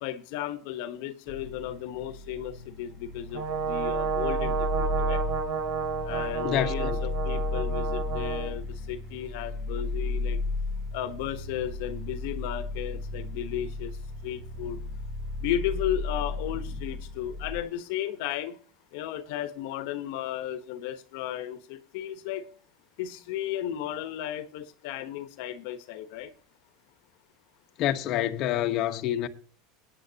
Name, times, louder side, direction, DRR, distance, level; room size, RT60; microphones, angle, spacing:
voice 1, 0.0-5.2 6.0-10.4 10.9-14.8 15.4-18.6 18.9-22.5 23.0-26.3, left 11 dB, 70° left, 1.1 m, -34 dB
sound 1, 1.3-17.6, left 2 dB, 20° right, 5.7 m, -34 dB
Brass instrument, 3.3-8.5, right 6 dB, 55° right, 3.0 m, -30 dB
voice 2, 6.4-7.0 27.8-29.3, left 12 dB, 45° left, 1.1 m, -27 dB
18.5 x 9.3 x 2.8 m
supercardioid pair, 135°, 0 cm